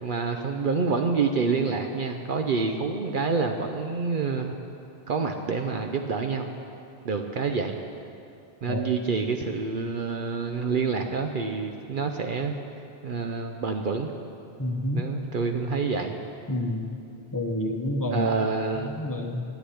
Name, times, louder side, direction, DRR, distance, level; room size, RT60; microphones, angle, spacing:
voice 1, 0.0-4.6 5.1-6.5 7.0-7.8 8.6-12.5 13.0-14.1 14.9-16.2 18.1-18.9, right 4 dB, 55° right, 4 dB, 0.8 m, -27 dB
voice 2, 14.6-15.1 16.5-16.8 17.3-18.3 18.9-19.4, left 1 dB, 20° left, 3 dB, 1.0 m, -28 dB
11.0 x 8.4 x 10.0 m, 2.8 s
omnidirectional pair, 1.1 m